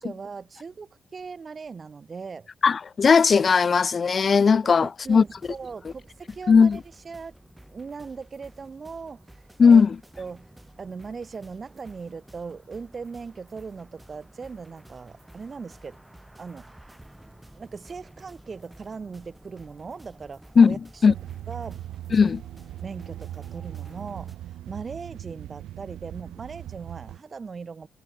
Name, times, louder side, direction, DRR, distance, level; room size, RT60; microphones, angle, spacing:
voice 1, 0.0-2.5 4.8-7.3 7.7-9.8 10.2-10.5 10.8-16.0 16.4-16.9 17.5-21.2 21.5-21.8 22.1-22.3 22.8-27.9, right 5 dB, 35° right, 1.3 m, -39 dB
voice 2, 2.6-5.2 6.5-6.8 9.6-10.0 20.6-20.8 21.0-21.1 22.1-22.4, left 5 dB, 40° left, 0.4 m, -17 dB
sound 1, 5.1-24.4, right 1 dB, 10° right, 2.7 m, -51 dB
sound 2, 21.1-27.2, right 13 dB, 80° right, 1.8 m, -39 dB
cardioid pair, 90°, 0 cm